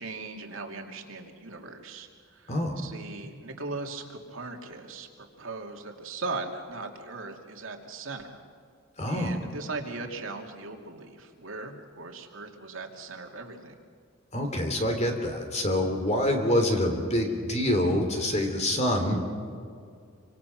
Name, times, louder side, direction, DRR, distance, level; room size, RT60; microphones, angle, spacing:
voice 1, 0.0-8.3 9.1-13.8, right 3 dB, 70° right, 2 dB, 2.6 m, -39 dB
voice 2, 9.0-9.4 14.3-19.2, left 1 dB, 35° left, 4 dB, 3.3 m, -26 dB
26.0 x 25.0 x 6.0 m, 2.3 s
head